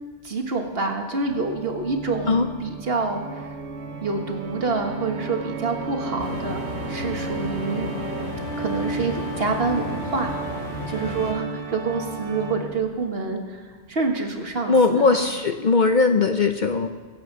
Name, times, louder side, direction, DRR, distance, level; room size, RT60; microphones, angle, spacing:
voice 1, 0.2-3.2 4.0-7.9 8.6-10.3 10.9-13.6 13.9-15.2, right 4 dB, 55° right, 3 dB, 1.7 m, -27 dB
Organ, 1.2-13.0, right 4 dB, 70° right, 1.2 m, -35 dB
sound 1, 6.2-11.3, left 4 dB, 70° left, 1.3 m, -35 dB
sound 2, 6.7-11.7, right 2 dB, 20° right, 1.5 m, -36 dB
voice 2, 14.7-16.9, left 4 dB, 50° left, 6 dB, 0.7 m, -19 dB
24.0 x 8.2 x 5.3 m, 1.4 s
omnidirectional pair, 1.2 m